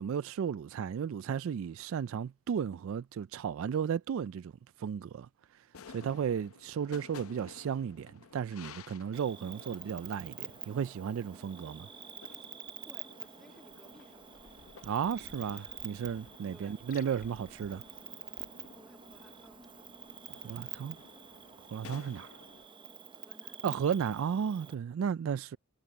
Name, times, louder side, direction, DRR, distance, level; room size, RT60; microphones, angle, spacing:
voice 1, 0.0-4.5 4.8-5.3 5.9-11.9 14.8-17.8 20.3-21.0 21.7-22.4 23.6-25.6, right 7 dB, 60° right, 0.3 m, -34 dB
sound 1, 5.7-22.7, left 5 dB, 70° left, 0.7 m, -55 dB
Cricket, 9.1-24.7, right 8 dB, 20° right, 0.7 m, -48 dB
voice 2, 12.7-14.4 16.5-16.9 18.7-19.8 23.1-23.6, equal, ahead, 2.3 m, -59 dB
Liquid, 16.7-21.7, left 8 dB, 40° left, 5.0 m, -63 dB
head